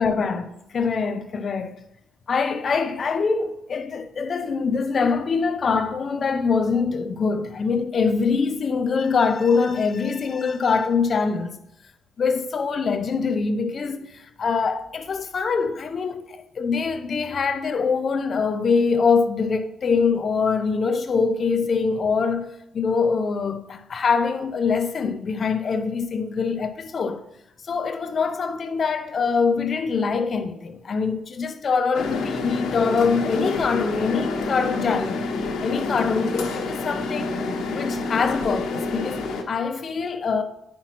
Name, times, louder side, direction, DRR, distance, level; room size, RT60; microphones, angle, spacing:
voice 1, 0.0-1.8 2.3-11.6 12.2-22.5 22.7-27.2 27.6-35.2 35.6-40.4, left 5 dB, 45° left, 0.5 m, -24 dB
sound 1, 31.9-39.4, left 3 dB, 80° left, 1.1 m, -28 dB
9.3 x 5.8 x 2.9 m
cardioid pair, 90°, 0 cm